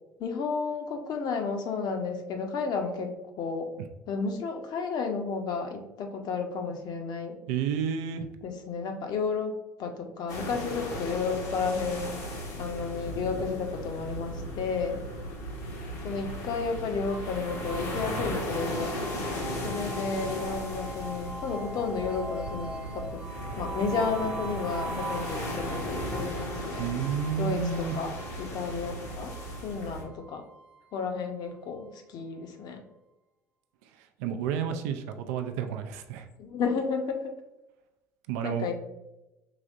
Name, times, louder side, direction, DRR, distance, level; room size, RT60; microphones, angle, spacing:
voice 1, 0.2-3.1 3.4-3.7 4.1-7.4 8.4-12.2 12.6-15.0 16.0-18.9 19.6-23.2 23.6-26.9 27.4-29.3 29.6-30.4 30.9-32.8 36.4-37.3 38.4-38.7, left 5 dB, 55° left, 5 dB, 0.7 m, -32 dB
voice 2, 7.5-8.3 26.8-27.9 34.2-36.2 38.3-38.7, right 8 dB, 75° right, 6 dB, 0.4 m, -30 dB
sound 1, 10.3-30.0, equal, 75° left, 1.1 m, -36 dB
sound 2, 17.1-32.0, right 2 dB, 15° right, 0.6 m, -42 dB
5.0 x 3.4 x 2.5 m, 0.95 s
hypercardioid pair, 65°, 9 cm